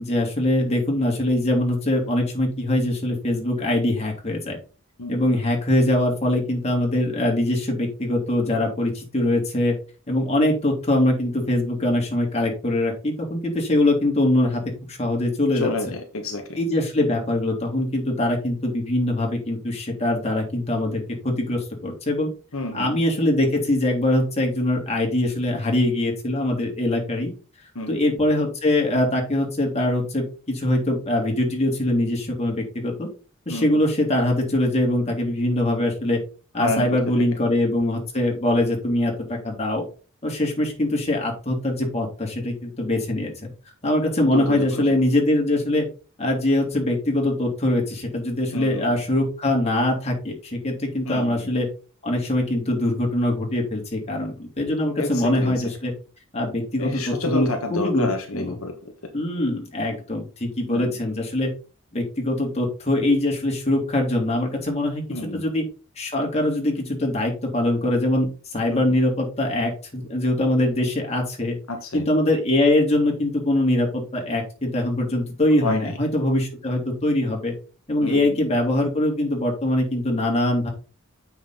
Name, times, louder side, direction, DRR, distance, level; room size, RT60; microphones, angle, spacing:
voice 1, 0.0-4.6 5.1-9.7 10.1-14.6 14.9-15.7 16.6-22.3 22.7-27.3 27.9-33.1 33.4-36.2 36.5-39.8 40.2-43.5 43.8-45.8 46.2-51.7 52.0-55.9 56.3-58.1 58.3-58.5 59.1-61.5 61.9-65.6 66.0-68.3 68.5-71.6 71.9-77.5 77.9-80.7, left 1 dB, 30° left, 0 dB, 3.2 m, -23 dB
voice 2, 5.0-5.4 15.5-16.6 22.5-23.0 27.7-28.0 33.5-33.8 36.6-37.0 44.3-45.0 48.5-48.9 51.0-51.4 55.0-55.6 56.8-58.9 60.7-60.9 65.1-65.5 68.7-69.0 71.7-72.1 75.6-76.0 78.0-78.4, left 2 dB, 80° left, 4 dB, 1.4 m, -29 dB
7.9 x 6.2 x 3.8 m, 0.35 s
head